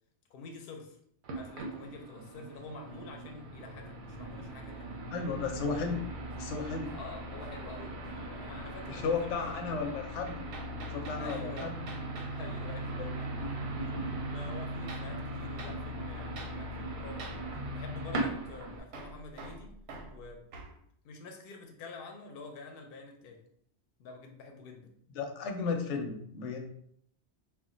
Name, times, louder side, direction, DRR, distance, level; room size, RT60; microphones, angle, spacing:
voice 1, 0.3-1.0 1.3-5.0 6.9-9.6 11.2-11.7 12.3-13.5 13.8-17.4 17.7-19.7 20.1-20.4 21.0-23.4 24.0-24.9 25.7-25.8, left 3 dB, 65° left, 3 dB, 0.7 m, -48 dB
sound 1, 1.2-18.8, right 1 dB, 55° right, 0.6 m, -39 dB
voice 2, 5.1-6.1 6.4-6.9 8.9-10.3 10.9-11.8 13.0-13.2 25.1-26.6, left 5 dB, 85° left, 4 dB, 0.9 m, -34 dB
Hammer, 6.3-7.8 8.0-8.4 10.3-12.4 14.9-15.1 15.6-15.8 16.4-16.6 17.2-17.5 18.9-20.8, right 3 dB, 90° right, 0.9 m, -48 dB
2.3 x 2.1 x 3.7 m, 0.68 s
omnidirectional pair, 1.2 m